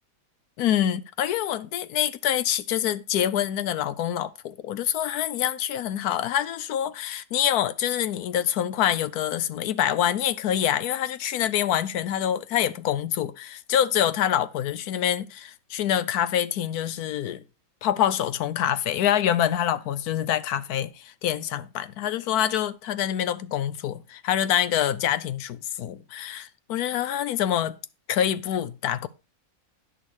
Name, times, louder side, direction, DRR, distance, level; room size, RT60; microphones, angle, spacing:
voice 1, 0.6-17.4 17.8-27.8 28.1-29.1, left 10 dB, 85° left, 1.2 m, -26 dB
10.0 x 6.4 x 4.7 m
omnidirectional pair, 1.6 m